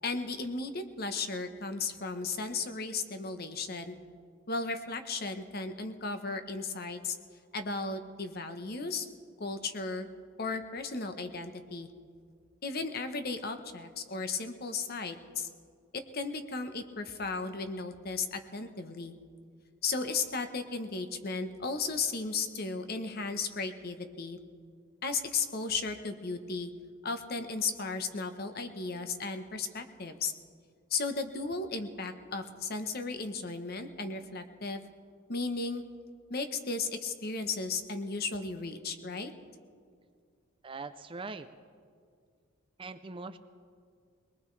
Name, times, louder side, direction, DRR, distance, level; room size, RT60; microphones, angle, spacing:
voice 1, 0.0-4.0 4.5-7.2 7.5-9.1 9.4-10.1 10.4-11.9 12.6-15.5 15.9-19.2 19.8-24.4 25.0-26.7 27.0-30.3 30.9-34.9 35.3-35.8 36.3-39.3, left 4 dB, 50° left, 7 dB, 1.0 m, -35 dB
voice 2, 40.6-41.5 42.8-43.4, right 3 dB, 25° right, 10 dB, 0.5 m, -41 dB
22.5 x 19.5 x 3.3 m, 2.1 s
head